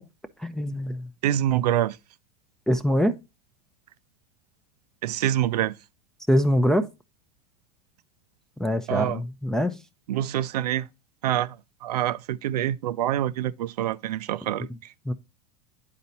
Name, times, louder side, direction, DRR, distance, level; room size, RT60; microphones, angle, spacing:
voice 1, 0.4-1.1 2.7-3.1 6.3-6.9 8.6-9.8 15.1-15.2, equal, ahead, 0.5 m, -23 dB
voice 2, 1.2-2.0 5.0-5.7 8.9-9.2 10.1-10.9 11.2-11.6 11.8-14.7, right 12 dB, 85° right, 0.4 m, -26 dB
10.5 x 4.1 x 2.7 m
hypercardioid pair, 100°, 20 cm